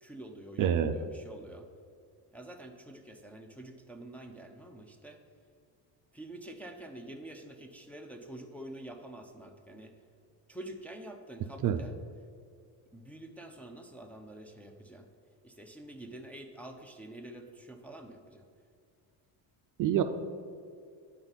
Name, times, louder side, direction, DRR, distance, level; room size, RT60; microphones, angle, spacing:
voice 1, 0.0-1.7 2.3-5.2 6.1-9.9 10.5-11.9 12.9-15.1 15.4-18.4, right 1 dB, 5° left, 2 dB, 0.5 m, -47 dB
voice 2, 0.6-0.9 11.6-11.8 19.8-20.0, right 10 dB, 50° right, 7 dB, 0.4 m, -26 dB
9.5 x 4.4 x 4.0 m, 2.3 s
cardioid pair, 110°, 43 cm